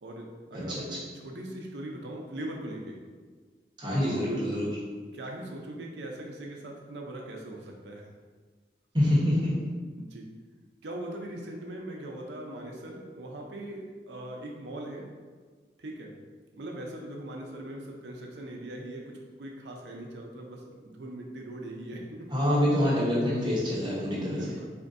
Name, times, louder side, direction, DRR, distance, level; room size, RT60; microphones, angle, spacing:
voice 1, 0.0-3.0 4.0-4.8 5.1-8.1 10.0-10.3 10.8-15.1 15.8-16.1 16.5-22.3 24.3-24.7, right 1 dB, 80° right, 0 dB, 0.6 m, -40 dB
voice 2, 3.8-4.7 8.9-9.5 22.3-24.4, left 1 dB, 25° right, -7 dB, 0.9 m, -26 dB
4.3 x 2.6 x 2.5 m, 1.5 s
head